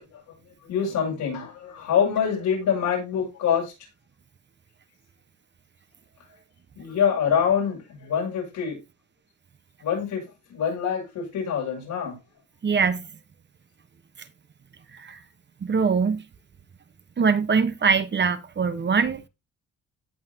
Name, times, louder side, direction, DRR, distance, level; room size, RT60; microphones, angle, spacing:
voice 1, 0.1-3.7 6.8-8.8 9.8-12.2, left 7 dB, 80° left, 7.2 m, -25 dB
voice 2, 12.6-13.1 14.9-15.2 15.6-16.2 17.2-19.3, right 5 dB, 35° right, 1.2 m, -23 dB
17.0 x 5.6 x 2.9 m
cardioid pair, 90°, 30 cm